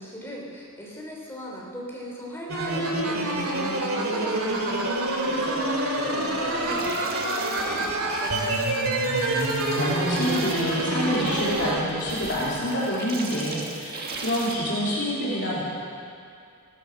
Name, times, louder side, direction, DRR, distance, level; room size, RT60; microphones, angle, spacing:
voice 1, 0.0-8.6, equal, 10° left, -3 dB, 3.2 m, -39 dB
sound 1, 2.5-11.8, right 1 dB, 75° right, 2.3 m, -26 dB
sound 2, 6.6-14.6, right 3 dB, 45° right, 1.7 m, -38 dB
voice 2, 9.7-15.6, equal, 55° left, -7 dB, 3.4 m, -27 dB
16.5 x 13.5 x 6.4 m, 2.4 s
head